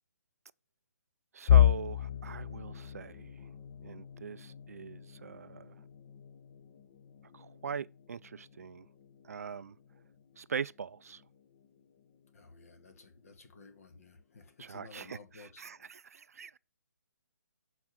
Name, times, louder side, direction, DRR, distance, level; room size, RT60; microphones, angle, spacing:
voice 1, 1.3-3.3 3.8-5.7 7.3-8.9 9.2-9.7 10.4-11.2 14.6-16.6, right 6 dB, 55° right, 0.4 m, -41 dB
sound 1, 1.5-13.3 13.7-14.0 14.4-14.5 15.4-15.9, left 11 dB, 30° left, 0.7 m, -33 dB
voice 2, 12.3-15.6, left 4 dB, 55° left, 1.9 m, -54 dB
7.2 x 5.0 x 5.3 m
figure-of-eight pair, 140°, 10 cm